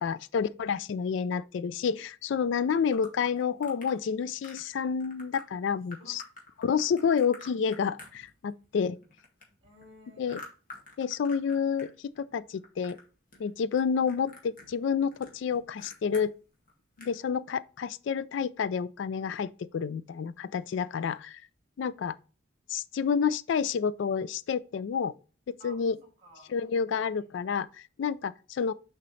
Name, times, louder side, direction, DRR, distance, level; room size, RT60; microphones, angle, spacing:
voice 1, 0.0-6.2 6.6-9.0 10.2-10.4 11.0-13.0 13.4-16.3 17.0-21.4 21.8-22.1 22.7-25.1 25.6-26.0 26.5-28.7, left 6 dB, 65° left, 0.3 m, -29 dB
sound 1, 2.9-4.0 4.4-4.7 5.0-5.4 5.9-8.7 8.9-11.9 12.2-13.0 13.3-13.8 14.1-16.3 16.7-16.8 17.0-17.2, left 2 dB, 45° left, 2.0 m, -48 dB
voice 2, 5.9-6.2 9.6-10.4 25.6-26.5 27.0-27.3, equal, 30° right, 3.1 m, -55 dB
6.8 x 5.1 x 3.2 m
head